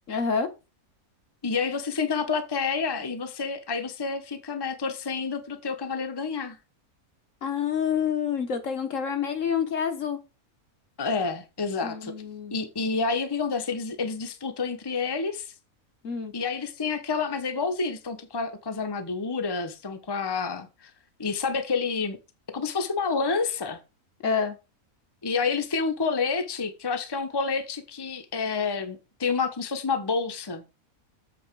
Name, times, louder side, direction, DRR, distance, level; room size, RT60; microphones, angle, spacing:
voice 1, 0.1-0.5 7.4-10.2 11.8-12.6 16.0-16.3 24.2-24.6, left 6 dB, 60° left, 1.5 m, -27 dB
voice 2, 1.4-6.6 11.0-12.1 12.5-15.5 16.3-20.9 21.2-22.2 22.5-23.8 25.2-30.6, left 4 dB, 20° left, 1.0 m, -29 dB
8.0 x 4.2 x 6.1 m
omnidirectional pair, 1.5 m